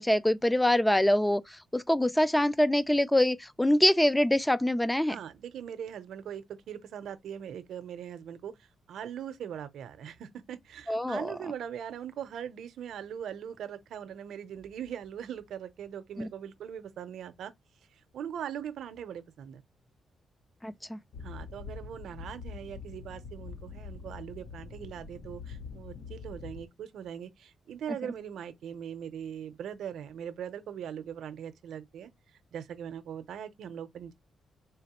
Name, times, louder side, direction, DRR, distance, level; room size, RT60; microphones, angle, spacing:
voice 1, 0.0-1.4 1.7-5.2 10.9-11.3 16.2-16.3 20.6-21.0, left 1 dB, 5° left, 0.3 m, -24 dB
voice 2, 5.0-17.5 18.1-19.6 21.2-32.1 32.5-34.1, right 9 dB, 75° right, 0.6 m, -41 dB
sound 1, 21.1-26.7, left 5 dB, 65° left, 0.6 m, -44 dB
4.0 x 3.4 x 2.9 m
cardioid pair, 135°, 0 cm